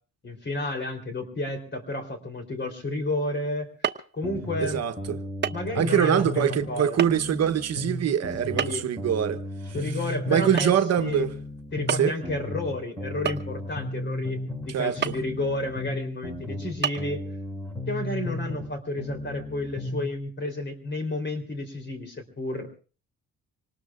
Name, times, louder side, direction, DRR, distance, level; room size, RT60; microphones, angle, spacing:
voice 1, 0.2-3.7 4.1-4.8 5.5-7.0 8.4-8.9 9.7-11.3 11.7-17.2 17.9-22.8, left 2 dB, 35° left, 3.6 m, -31 dB
sound 1, 3.8-4.1 5.4-5.7 5.9-6.0 7.0-7.1 8.6-9.0 10.6-10.8 11.1-11.2 11.9-12.2 13.2-13.8 15.0-15.2 15.8-15.9 16.8-16.9, right 7 dB, 35° right, 1.0 m, -28 dB
sound 2, 4.2-6.7 7.0-10.7 11.0-14.7 15.0-18.7 19.0-20.0, left 1 dB, 10° left, 6.4 m, -34 dB
voice 2, 4.6-5.2 5.7-9.4 9.8-9.9 10.3-11.3 11.9-12.1 14.7-15.1, right 9 dB, 55° right, 1.0 m, -24 dB
26.0 x 19.0 x 2.4 m
cardioid pair, 90°, 30 cm